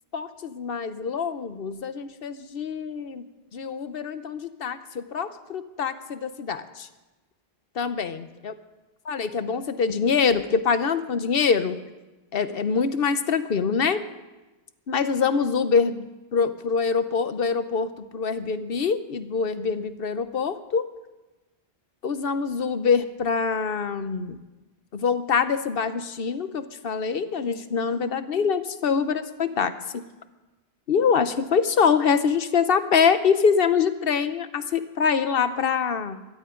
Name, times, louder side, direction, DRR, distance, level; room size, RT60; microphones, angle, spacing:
voice 1, 0.1-3.2 3.5-6.9 7.8-8.5 9.1-11.8 12.3-14.0 14.9-16.1 16.3-20.9 22.0-24.4 24.9-30.0 30.9-36.2, left 6 dB, 65° left, 11 dB, 1.1 m, -24 dB
22.5 x 16.5 x 3.8 m, 1.1 s
omnidirectional pair, 1.0 m